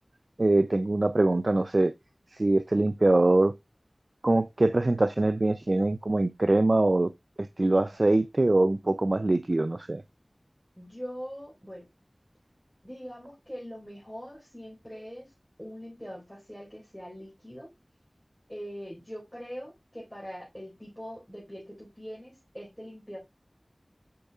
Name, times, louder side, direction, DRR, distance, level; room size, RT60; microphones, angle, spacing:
voice 1, 0.4-1.9 2.3-3.5 4.2-7.1 7.4-10.0, right 2 dB, 60° right, 0.4 m, -23 dB
voice 2, 10.8-11.9 12.8-15.3 15.6-17.7 18.5-23.2, equal, 5° left, 4.3 m, -42 dB
8.4 x 6.3 x 2.3 m
wide cardioid pair, 40°, 0 cm